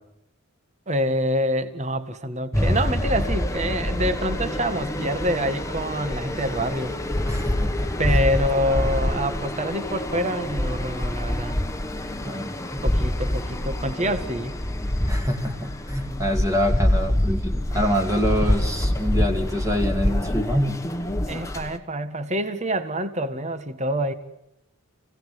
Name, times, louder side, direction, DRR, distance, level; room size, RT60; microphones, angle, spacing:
voice 1, 0.9-6.9 8.0-11.6 12.8-14.6 21.3-24.1, equal, 35° right, 1.7 m, -26 dB
sound 1, 2.5-21.7, left 1 dB, 15° left, 1.4 m, -26 dB
voice 2, 7.3-8.2 12.2-12.8 14.0-14.1 15.1-20.8, equal, 15° right, 2.4 m, -26 dB
29.0 x 17.5 x 9.4 m
head